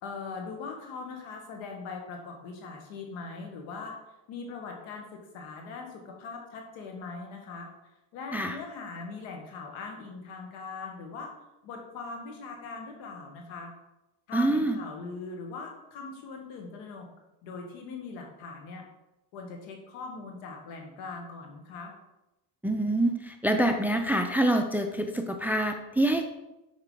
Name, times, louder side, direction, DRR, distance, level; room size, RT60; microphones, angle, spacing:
voice 1, 0.0-3.9 4.3-7.7 8.1-11.3 11.6-13.7 14.3-17.1 17.4-18.8 19.3-21.9, left 4 dB, 75° left, 2 dB, 1.5 m, -41 dB
voice 2, 14.3-14.8 22.6-26.2, right 1 dB, 5° right, 5 dB, 0.5 m, -26 dB
6.3 x 5.0 x 3.7 m, 0.97 s
supercardioid pair, 80°, 46 cm